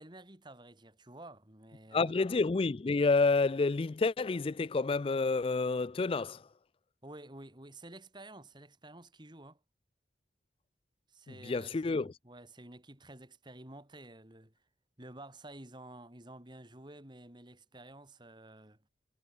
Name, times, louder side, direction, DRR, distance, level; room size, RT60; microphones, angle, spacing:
voice 1, 0.0-2.1 7.0-9.6 11.1-14.5 15.0-18.8, right 1 dB, 25° right, 3.3 m, -51 dB
voice 2, 1.9-6.4 11.4-12.1, left 3 dB, 30° left, 0.4 m, -29 dB
head